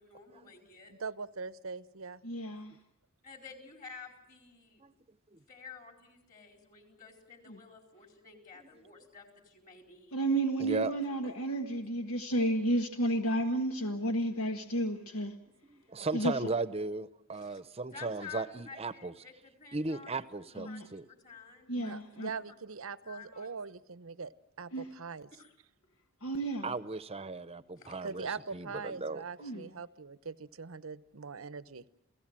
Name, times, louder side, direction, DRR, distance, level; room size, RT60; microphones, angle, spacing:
voice 1, 0.0-0.9 3.2-4.8 5.5-10.1 17.3-17.6 17.9-20.2 20.6-22.4 23.0-23.6 25.3-25.5 27.8-28.0, left 5 dB, 40° left, 3 dB, 4.5 m, -51 dB
voice 2, 0.9-2.2 21.7-24.3 24.6-25.3 28.0-31.8, right 5 dB, 70° right, 15 dB, 0.9 m, -42 dB
voice 3, 2.3-2.7 7.5-7.6 10.1-15.3 16.1-16.3 20.6-20.9 21.7-22.3 24.7-24.9 26.2-26.7 29.4-29.7, right 1 dB, 80° left, 5 dB, 1.6 m, -32 dB
voice 4, 10.6-10.9 15.7-19.1 19.7-21.0 26.6-29.2, right 3 dB, 30° right, 14 dB, 0.9 m, -36 dB
29.0 x 17.0 x 7.7 m, 0.79 s
head